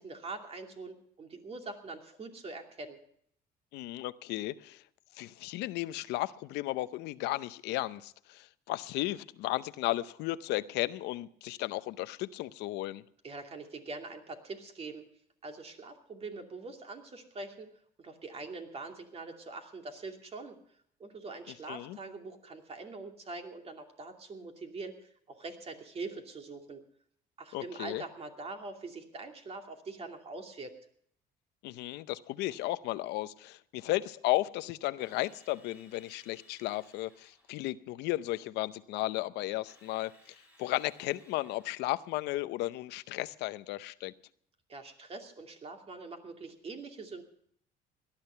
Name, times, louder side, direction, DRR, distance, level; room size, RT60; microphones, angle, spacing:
voice 1, 0.0-3.0 13.2-15.0 15.4-17.7 18.0-20.6 21.0-25.0 25.3-26.8 27.4-30.7 44.7-47.2, right 3 dB, 35° right, 4 dB, 2.6 m, -43 dB
voice 2, 3.7-4.8 5.2-13.0 21.7-22.0 27.5-28.0 31.6-40.1 40.6-44.1, left 17 dB, 90° left, 15 dB, 0.6 m, -34 dB
Drill, 35.0-37.7 39.7-42.1, left 1 dB, 10° right, 4.3 m, -62 dB
18.0 x 11.5 x 5.6 m, 0.66 s
cardioid pair, 110°, 17 cm